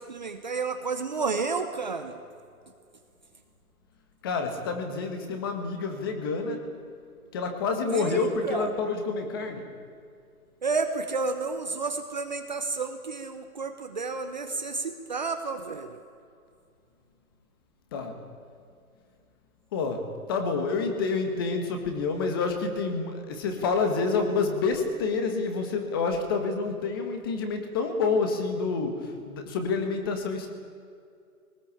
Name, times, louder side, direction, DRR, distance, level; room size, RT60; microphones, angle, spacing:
voice 1, 0.0-2.2 7.9-8.7 10.6-16.0, right 4 dB, 30° right, 7 dB, 1.0 m, -31 dB
voice 2, 4.2-6.7 7.3-9.7 17.9-18.2 19.7-30.5, left 4 dB, 15° left, 6 dB, 1.6 m, -28 dB
21.5 x 19.5 x 8.5 m, 2.4 s
hypercardioid pair, 175°, 45 cm